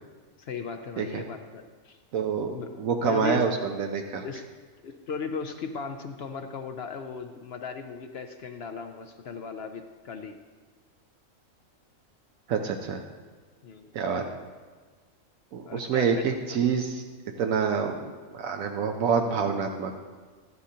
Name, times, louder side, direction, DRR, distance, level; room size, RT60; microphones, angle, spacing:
voice 1, 0.4-2.0 2.5-2.7 3.0-3.5 4.2-4.5 4.8-10.4 13.6-13.9 15.7-16.3, left 5 dB, 60° left, 6 dB, 0.7 m, -37 dB
voice 2, 2.1-4.3 12.5-13.0 13.9-14.2 15.5-17.0 17.4-19.9, right 6 dB, 80° right, 4 dB, 1.1 m, -27 dB
13.0 x 11.0 x 2.8 m, 1.5 s
omnidirectional pair, 1.4 m